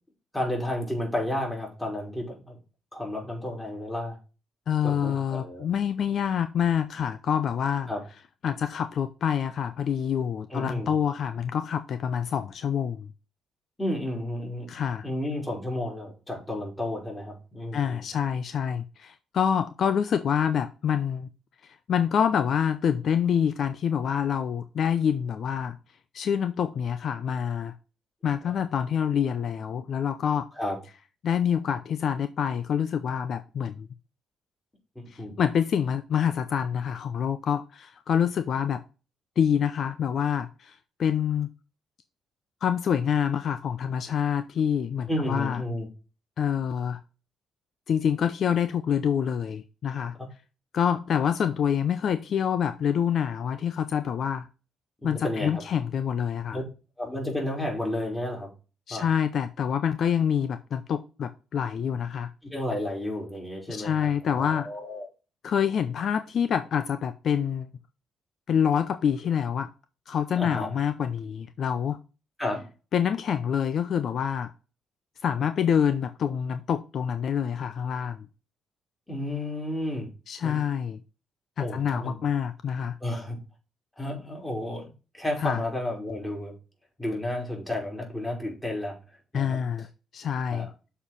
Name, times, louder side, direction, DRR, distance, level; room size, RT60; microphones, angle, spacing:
voice 1, 0.3-2.6 2.9-4.2 4.8-5.7 7.9-8.0 10.5-11.0 13.8-14.7 15.0-18.0 28.4-28.6 30.6-30.8 35.0-35.4 45.1-45.9 55.0-55.6 56.5-56.6 57.0-58.5 58.9-59.1 62.4-65.1 70.4-70.7 72.4-72.7 79.1-80.1 80.4-80.6 81.6-82.2 83.0-83.4 84.0-84.9 85.1-86.5 87.0-89.0 89.3-89.6 90.5-90.7, left 1 dB, 10° left, 4.1 m, -32 dB
voice 2, 4.7-7.9 8.4-13.1 14.7-15.1 17.7-21.3 21.6-25.8 26.1-27.7 28.2-30.5 31.2-33.9 35.1-38.8 39.4-41.5 42.6-45.6 46.4-47.0 47.9-50.1 50.7-54.5 55.0-56.6 58.9-62.3 63.7-64.7 65.4-67.7 68.5-69.7 70.1-72.0 72.9-74.5 75.2-78.3 80.3-81.0 81.6-83.0 85.4-85.6 89.3-89.9 90.1-90.7, left 8 dB, 60° left, 0.5 m, -26 dB
7.0 x 4.5 x 5.3 m
cardioid pair, 90°, 0 cm